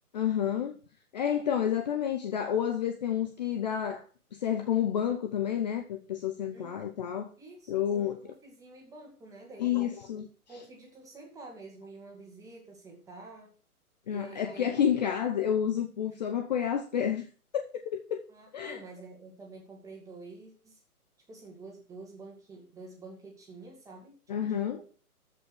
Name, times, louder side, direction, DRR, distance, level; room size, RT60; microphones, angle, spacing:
voice 1, 0.1-0.8 1.1-4.1 4.3-7.3 7.7-8.2 9.6-10.3 14.1-17.3 17.5-18.2 18.5-18.8 24.3-24.8, left 9 dB, 30° left, 0.8 m, -29 dB
voice 2, 7.4-10.0 10.5-13.5 14.1-14.7 15.0-15.5 18.3-20.8 21.3-24.1 24.4-24.8, right 3 dB, 5° right, 2.3 m, -48 dB
13.5 x 5.5 x 6.2 m
hypercardioid pair, 150°, 45 cm